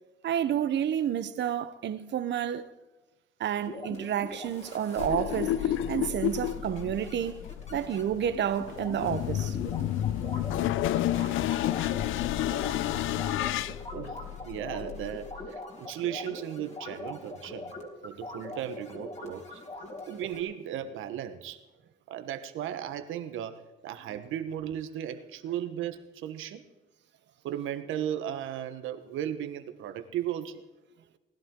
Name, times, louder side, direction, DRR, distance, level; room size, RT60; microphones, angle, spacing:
voice 1, 0.2-2.7 3.4-7.4 7.7-9.6 11.2-11.4, right 9 dB, 65° right, 1.0 m, -30 dB
sound 1, 3.6-20.4, left 1 dB, 35° left, 3.8 m, -43 dB
sound 2, 5.0-15.5, left 12 dB, 85° left, 0.5 m, -31 dB
voice 2, 14.4-17.7 18.0-19.6 20.1-21.6 22.1-26.7 27.4-30.6, right 10 dB, 85° right, 1.3 m, -36 dB
19.5 x 12.0 x 3.8 m
cardioid pair, 90°, 20 cm